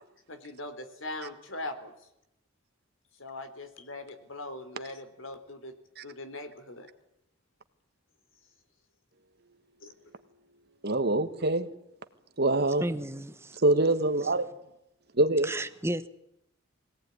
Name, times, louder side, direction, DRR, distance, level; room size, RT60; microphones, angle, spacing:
voice 1, 0.3-1.9 3.2-5.8 6.0-6.9 9.8-9.9, left 2 dB, 70° left, 3.4 m, -40 dB
voice 2, 10.8-11.7 12.4-12.8 13.6-14.4 15.1-15.5, right 2 dB, 50° right, 1.7 m, -24 dB
voice 3, 12.8-13.6 15.4-16.1, right 1 dB, 15° right, 1.2 m, -33 dB
22.5 x 18.0 x 9.8 m
head